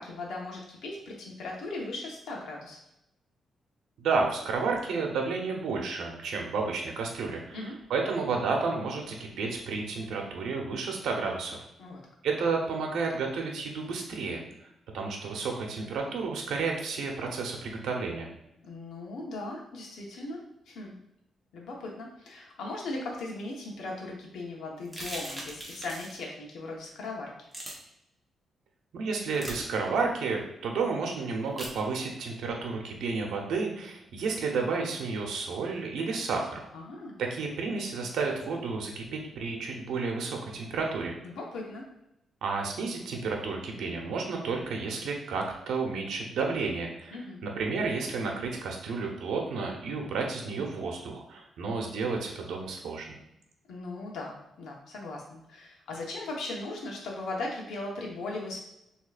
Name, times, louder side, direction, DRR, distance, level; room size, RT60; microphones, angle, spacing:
voice 1, 0.0-2.8 7.5-7.8 11.8-12.0 18.6-20.9 21.5-27.3 36.7-37.2 41.2-41.9 47.1-47.4 53.7-58.6, left 2 dB, 80° left, -1 dB, 1.2 m, -38 dB
voice 2, 4.0-11.6 12.2-14.4 14.9-18.3 28.9-36.6 37.2-41.2 42.4-53.2, right 4 dB, 90° right, 1 dB, 0.9 m, -31 dB
sound 1, 24.9-26.2 27.5-27.7 29.3-29.6 31.6-31.8, right 1 dB, 5° right, 1.1 m, -39 dB
6.4 x 3.1 x 2.5 m, 0.84 s
cardioid pair, 140°, 0 cm